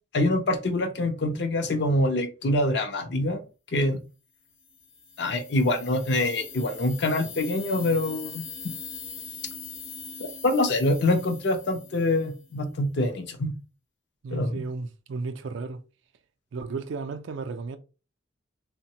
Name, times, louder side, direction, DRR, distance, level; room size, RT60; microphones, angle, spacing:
voice 1, 0.1-3.4 3.7-4.0 5.2-8.4 10.4-13.5 14.3-14.6, left 1 dB, 55° left, 0.5 m, -25 dB
sound 1, 4.6-12.5, left 6 dB, 80° left, 0.9 m, -42 dB
voice 2, 14.2-15.8 16.5-17.8, right 4 dB, 65° right, 0.3 m, -34 dB
3.3 x 2.1 x 2.7 m
head